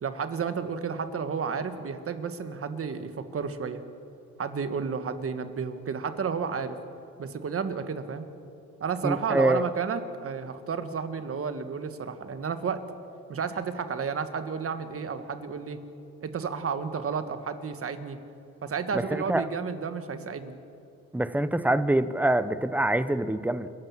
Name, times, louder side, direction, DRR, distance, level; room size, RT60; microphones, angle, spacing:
voice 1, 0.0-3.8 4.4-6.8 7.2-8.3 8.8-12.8 13.3-15.8 16.2-18.2 18.6-20.6, right 6 dB, 50° right, 9 dB, 1.6 m, -32 dB
voice 2, 9.0-9.6 18.9-19.5 21.1-23.7, right 1 dB, 5° right, 13 dB, 0.9 m, -25 dB
29.5 x 12.0 x 7.4 m, 2.7 s
cardioid pair, 90°, 30 cm